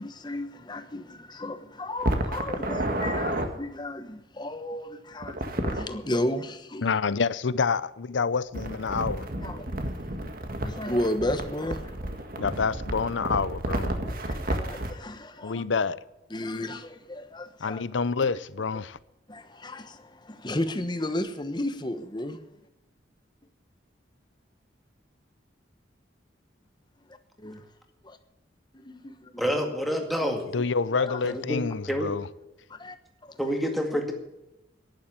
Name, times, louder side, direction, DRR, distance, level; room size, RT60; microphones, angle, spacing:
voice 1, 0.0-6.9 9.4-9.7 10.6-11.9 12.4-12.5 14.1-15.6 16.3-17.8 19.3-22.4 27.4-27.6 28.0-28.2 28.7-29.6 30.9-31.4 32.7-33.0 33.2-33.4, left 1 dB, 25° left, 1.1 m, -33 dB
sound 1, 2.0-3.5 5.2-5.9 8.5-14.9, right 1 dB, 50° right, 1.7 m, -31 dB
voice 2, 6.8-9.3 12.4-13.9 15.4-16.0 17.6-19.0 30.5-32.2, left 5 dB, 85° left, 0.6 m, -27 dB
voice 3, 29.4-30.4 31.2-32.1 33.4-34.1, equal, ahead, 2.1 m, -28 dB
11.5 x 10.5 x 8.6 m
head